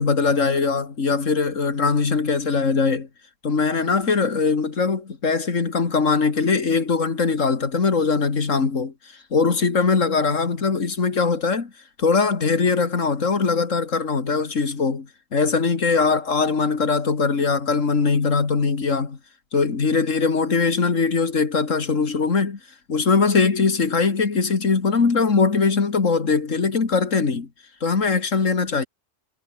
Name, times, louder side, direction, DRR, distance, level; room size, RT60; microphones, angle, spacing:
voice 1, 0.0-3.1 3.4-8.9 9.3-11.7 12.0-19.2 19.5-22.6 22.9-27.5 27.8-28.9, left 4 dB, 85° left, 2.6 m, -21 dB
omnidirectional pair, 1.3 m